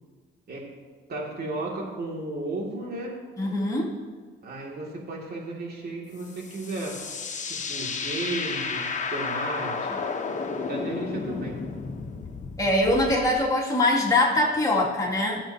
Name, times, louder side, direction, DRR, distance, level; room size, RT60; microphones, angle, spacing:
voice 1, 1.1-3.2 4.4-7.0 7.5-10.0 10.7-11.6, right 2 dB, 50° right, -1 dB, 2.6 m, -34 dB
voice 2, 3.4-3.9 12.6-15.4, left 1 dB, 15° left, -4 dB, 2.6 m, -23 dB
sound 1, 6.2-13.4, left 4 dB, 40° left, 1.1 m, -32 dB
16.0 x 7.9 x 2.9 m, 1.5 s
cardioid pair, 90°, 20 cm